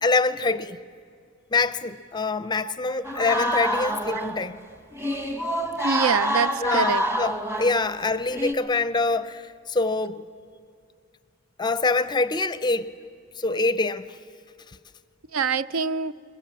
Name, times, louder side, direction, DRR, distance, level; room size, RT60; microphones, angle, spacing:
voice 1, 0.0-0.8 1.5-4.6 6.6-10.3 11.6-13.0 13.4-14.0, left 3 dB, 20° left, 0.5 m, -25 dB
sound 1, 3.0-4.5 4.9-7.9 8.3-8.5, equal, 10° right, 1.1 m, -27 dB
voice 2, 5.8-7.0 15.3-16.1, right 6 dB, 80° right, 0.5 m, -25 dB
22.0 x 21.5 x 7.4 m
head